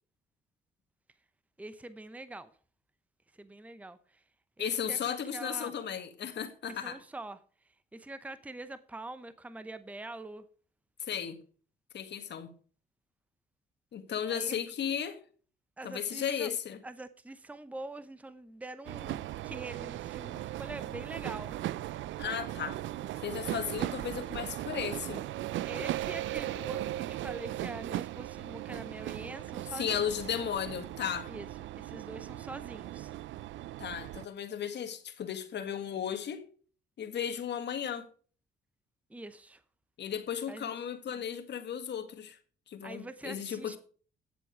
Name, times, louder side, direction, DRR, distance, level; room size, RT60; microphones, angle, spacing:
voice 1, 1.6-2.5 3.3-4.2 4.6-5.0 5.3-5.7 6.7-7.4 7.9-10.4 14.3-14.6 15.8-16.5 16.8-21.5 25.6-30.1 31.3-31.5 31.8-33.1 39.1-39.6 40.5-40.7 41.1-41.2 42.8-43.8, right 2 dB, 5° right, 0.8 m, -44 dB
voice 2, 4.6-7.0 11.1-11.4 11.9-12.5 13.9-15.2 15.8-16.8 22.2-22.8 23.2-25.2 29.7-31.3 33.8-36.5 37.0-38.1 40.0-42.4 42.7-43.8, left 8 dB, 60° left, 1.8 m, -35 dB
sound 1, 18.8-34.3, right 14 dB, 75° right, 0.4 m, -38 dB
10.5 x 7.7 x 4.9 m
cardioid pair, 90°, 20 cm